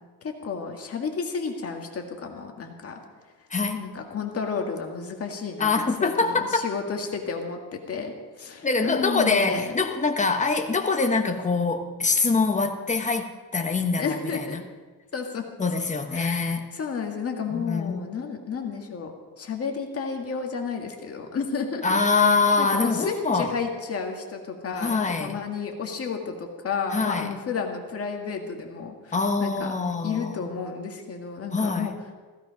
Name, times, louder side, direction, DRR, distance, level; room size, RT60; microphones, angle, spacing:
voice 1, 0.2-2.9 3.7-5.7 6.0-9.7 14.0-14.6 15.1-15.5 16.1-19.1 19.4-22.3 22.6-29.2 29.4-29.7 30.0-31.9, left 5 dB, 35° left, 3 dB, 1.8 m, -32 dB
voice 2, 3.5-3.8 5.6-6.6 8.6-14.6 15.6-16.6 17.5-18.1 21.8-23.5 24.8-25.4 26.9-27.3 29.1-30.5 31.5-32.0, left 4 dB, 20° left, 5 dB, 1.2 m, -24 dB
16.0 x 14.5 x 5.2 m, 1.4 s
cardioid pair, 170°, 39 cm